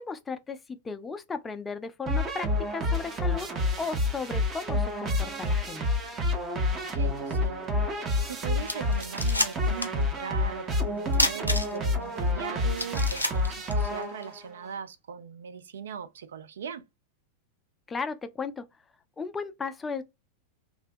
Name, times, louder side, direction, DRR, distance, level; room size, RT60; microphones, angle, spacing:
voice 1, 0.0-3.5 3.8-5.9 17.9-18.7 19.2-20.0, left 4 dB, 15° left, 0.3 m, -35 dB
sound 1, 2.1-14.5, left 2 dB, 25° right, 0.6 m, -28 dB
voice 2, 6.7-16.8, right 7 dB, 65° right, 0.3 m, -40 dB
sound 2, 8.3-8.4 8.6-10.0 10.3-10.4 11.1-12.0 12.4-12.5 12.8-14.3, left 1 dB, 90° left, 0.5 m, -29 dB
2.6 x 2.1 x 2.5 m
figure-of-eight pair, 90°, 0 cm